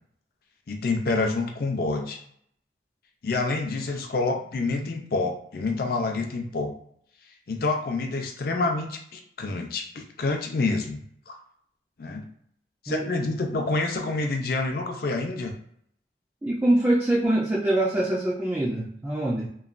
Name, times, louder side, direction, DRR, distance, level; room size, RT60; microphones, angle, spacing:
voice 1, 0.7-2.2 3.2-6.7 7.5-11.4 12.0-12.3 12.8-15.5, left 3 dB, 55° left, 3 dB, 0.5 m, -27 dB
voice 2, 16.4-19.5, right 1 dB, 10° right, -5 dB, 0.3 m, -24 dB
3.1 x 2.2 x 2.4 m, 0.67 s
head